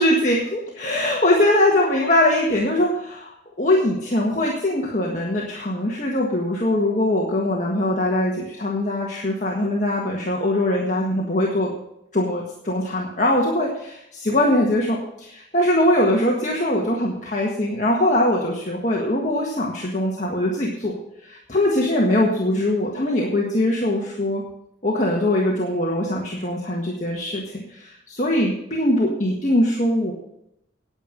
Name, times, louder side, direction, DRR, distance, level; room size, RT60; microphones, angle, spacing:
voice 1, 0.0-11.7 12.1-24.4 24.8-30.1, left 1 dB, 40° left, -2 dB, 1.6 m, -22 dB
9.8 x 9.1 x 6.5 m, 0.78 s
head